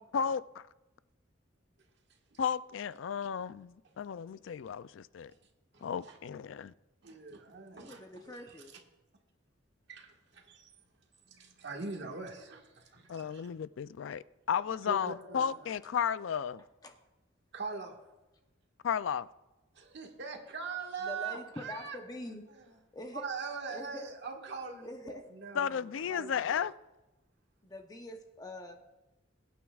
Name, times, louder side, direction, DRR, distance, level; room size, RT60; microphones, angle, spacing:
voice 1, 0.0-0.4 2.4-5.3 5.8-6.7 13.1-16.6 18.8-19.3 25.6-26.7, left 7 dB, 70° left, 16 dB, 0.4 m, -33 dB
voice 2, 5.7-6.2 7.0-8.6 9.9-10.7 11.3-13.4 14.8-15.7 17.5-18.0 19.7-22.0 22.6-22.7 23.1-26.5, right 4 dB, 60° right, 1 dB, 1.6 m, -42 dB
voice 3, 7.7-8.7 16.6-16.9 21.0-22.4 22.9-23.3 23.7-24.1 24.8-25.3 27.6-28.8, left 1 dB, 20° left, 4 dB, 0.8 m, -45 dB
22.5 x 9.3 x 2.4 m, 1.0 s
head